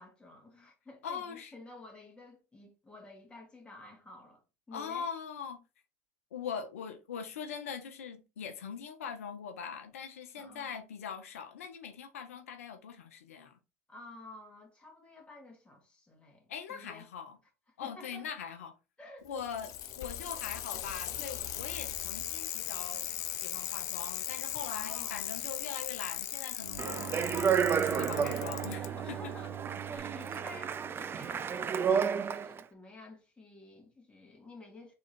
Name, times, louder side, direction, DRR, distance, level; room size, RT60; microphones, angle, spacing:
voice 1, 0.0-5.1 10.4-10.8 13.9-17.1 17.7-18.3 19.0-19.4 24.6-25.4 29.0-34.9, left 2 dB, 15° left, 2.1 m, -52 dB
voice 2, 1.0-1.5 4.7-5.6 6.3-13.6 16.5-17.4 17.8-18.8 19.2-27.2 27.8-29.3 29.9-30.2, left 7 dB, 85° left, 0.8 m, -42 dB
Bicycle, 19.3-28.9 30.0-30.1, left 12 dB, 55° left, 0.6 m, -38 dB
Bowed string instrument, 26.6-31.5, right 10 dB, 60° right, 1.1 m, -43 dB
Speech, 26.8-32.6, right 7 dB, 30° right, 0.4 m, -31 dB
3.7 x 3.3 x 4.2 m
hypercardioid pair, 80°, 7 cm